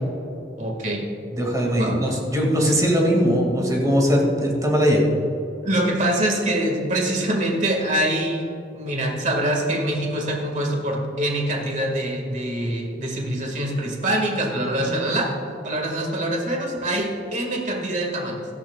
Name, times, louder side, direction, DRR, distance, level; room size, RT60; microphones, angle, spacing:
voice 1, 0.6-1.0 1.7-2.0 5.6-8.4 8.7-15.3 15.6-18.5, right 1 dB, 40° right, 1 dB, 1.9 m, -24 dB
voice 2, 1.3-5.0 14.8-14.9, equal, 20° right, -1 dB, 2.2 m, -20 dB
17.0 x 13.5 x 2.4 m, 2.9 s
head